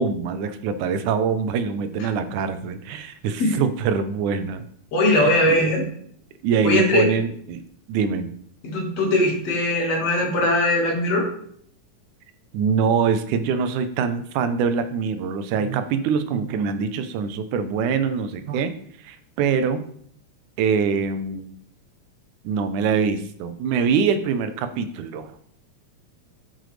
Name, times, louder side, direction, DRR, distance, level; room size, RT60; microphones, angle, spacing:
voice 1, 0.0-4.6 5.2-5.8 6.4-7.6 7.9-8.3 12.5-18.7 19.0-19.8 20.6-21.5 22.4-25.4, right 6 dB, 85° right, 10 dB, 2.1 m, -24 dB
voice 2, 4.9-5.8 6.6-7.1 8.6-11.3, left 1 dB, 60° left, -1 dB, 2.7 m, -20 dB
7.5 x 6.7 x 3.2 m, 0.64 s
omnidirectional pair, 3.5 m